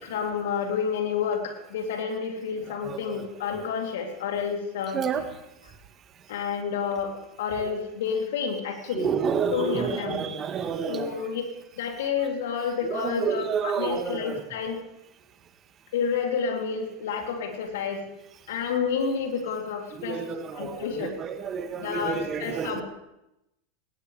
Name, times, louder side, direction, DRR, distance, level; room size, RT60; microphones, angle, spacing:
voice 1, 0.0-5.0 6.3-7.1 7.4-9.1 9.5-10.4 10.9-11.4 11.8-14.8 15.9-18.0 18.5-20.2 20.5-21.1 21.8-22.8, left 6 dB, 70° left, 2 dB, 3.2 m, -29 dB
voice 2, 2.7-3.2 4.9-5.3 8.9-11.2 12.8-14.4 19.9-22.8, right 7 dB, 35° right, 8 dB, 1.8 m, -30 dB
19.0 x 18.0 x 3.4 m, 0.89 s
hypercardioid pair, 90°, 0 cm